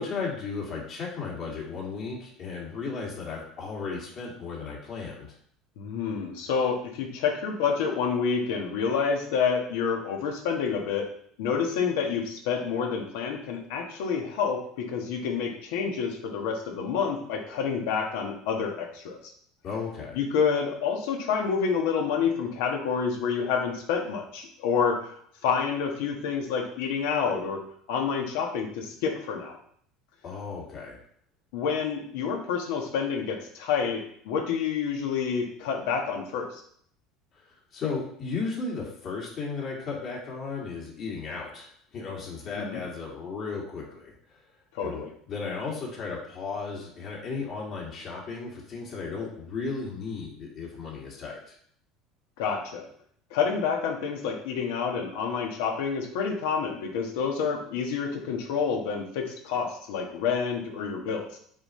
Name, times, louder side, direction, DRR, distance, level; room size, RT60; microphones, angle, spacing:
voice 1, 0.0-5.3 19.6-20.2 30.2-31.0 37.3-44.4 44.8-51.5, left 4 dB, 55° left, -4 dB, 2.2 m, -35 dB
voice 2, 5.8-11.1 11.4-19.2 20.1-25.0 25.4-27.6 27.9-29.6 31.5-36.6 42.6-42.8 44.7-45.1 52.4-52.9 53.3-61.4, left 6 dB, 75° left, 2 dB, 1.3 m, -28 dB
7.1 x 4.2 x 3.2 m, 0.63 s
hypercardioid pair, 85°, 0 cm